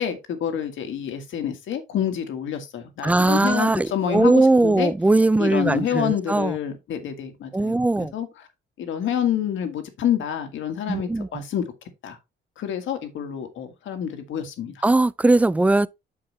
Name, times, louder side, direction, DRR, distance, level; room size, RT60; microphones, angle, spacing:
voice 1, 0.0-4.9 5.4-7.8 8.1-8.3 8.8-11.6 12.0-12.2 12.6-14.8, left 9 dB, 75° left, 1.8 m, -27 dB
voice 2, 3.0-6.6 7.5-8.1 10.9-11.4 14.8-15.9, right 2 dB, 5° right, 0.3 m, -19 dB
8.7 x 5.9 x 3.0 m
cardioid pair, 90°, 20 cm